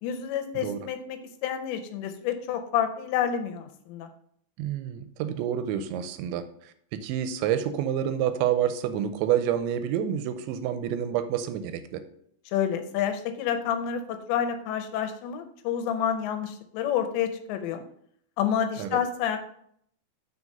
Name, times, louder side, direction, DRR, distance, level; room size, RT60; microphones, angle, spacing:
voice 1, 0.0-4.1 12.5-17.8 18.4-19.4, left 9 dB, 80° left, 8 dB, 2.8 m, -29 dB
voice 2, 4.6-12.0 18.8-19.0, right 10 dB, 85° right, 11 dB, 2.9 m, -28 dB
6.3 x 4.8 x 5.3 m, 0.66 s
omnidirectional pair, 5.2 m